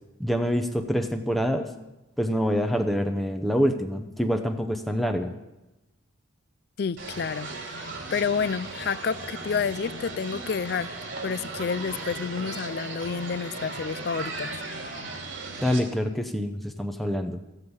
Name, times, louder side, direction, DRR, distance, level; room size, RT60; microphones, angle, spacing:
voice 1, 0.2-1.7 2.2-5.3 15.6-17.4, equal, ahead, 0.7 m, -26 dB
voice 2, 6.8-10.9 11.2-14.5, left 6 dB, 50° left, 0.4 m, -29 dB
sound 1, 7.0-15.8, right 3 dB, 80° right, 2.9 m, -37 dB
15.0 x 8.1 x 7.0 m
head